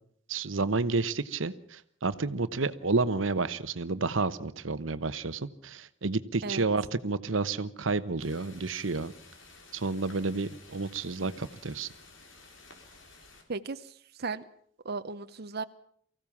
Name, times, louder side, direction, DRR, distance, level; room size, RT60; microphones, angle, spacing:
voice 1, 0.3-9.1 9.7-11.9, right 3 dB, 90° right, 13 dB, 1.0 m, -30 dB
sound 1, 8.2-13.4, left 3 dB, 75° left, 4.5 m, -53 dB
voice 2, 13.5-14.4 14.8-15.6, right 4 dB, 55° right, 9 dB, 0.8 m, -36 dB
24.0 x 16.0 x 7.3 m, 0.63 s
head